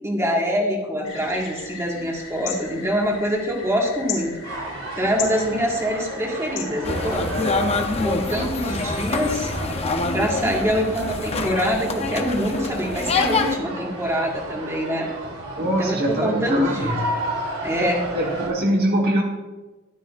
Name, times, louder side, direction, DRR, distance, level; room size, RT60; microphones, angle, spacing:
voice 1, 0.0-4.7 5.0-7.3 8.0-9.5 10.1-15.1 15.6-17.0 17.6-18.0, equal, 15° right, -1 dB, 1.8 m, -24 dB
sound 1, 1.0-7.4, left 6 dB, 65° left, 3.0 m, -36 dB
sound 2, 4.4-18.5, right 1 dB, 85° right, 3.5 m, -33 dB
sound 3, 6.8-13.6, left 3 dB, 30° left, 0.7 m, -25 dB
voice 2, 15.6-17.0 18.1-19.2, right 1 dB, 45° right, -1 dB, 1.3 m, -23 dB
13.0 x 11.0 x 2.5 m, 1.2 s
head